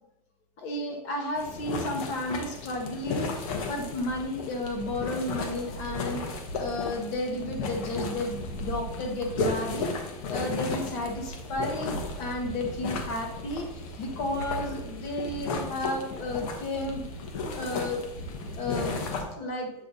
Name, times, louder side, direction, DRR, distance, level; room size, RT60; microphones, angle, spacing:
voice 1, 0.6-10.0 10.3-17.0 17.4-18.1 18.6-19.0 19.3-19.7, left 1 dB, 35° left, 2 dB, 1.0 m, -33 dB
sound 1, 1.4-19.2, left 3 dB, 60° left, 1.2 m, -34 dB
8.0 x 3.3 x 4.0 m, 0.87 s
supercardioid pair, 170°, 20 cm